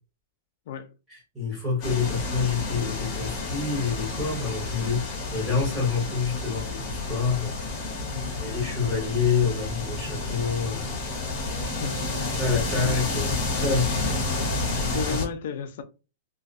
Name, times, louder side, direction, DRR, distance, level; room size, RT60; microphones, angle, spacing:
voice 1, 1.3-7.8 8.4-11.5 12.4-14.0, left 5 dB, 10° right, 1.1 m, -27 dB
sound 1, 1.8-15.3, left 3 dB, 30° left, 0.8 m, -30 dB
voice 2, 8.1-8.5 11.6-12.4 12.8-13.1 14.3-15.8, left 7 dB, 60° left, 0.4 m, -35 dB
sound 2, 11.4-14.4, right 7 dB, 70° right, 0.4 m, -43 dB
2.5 x 2.1 x 2.4 m
supercardioid pair, 165°, 0 cm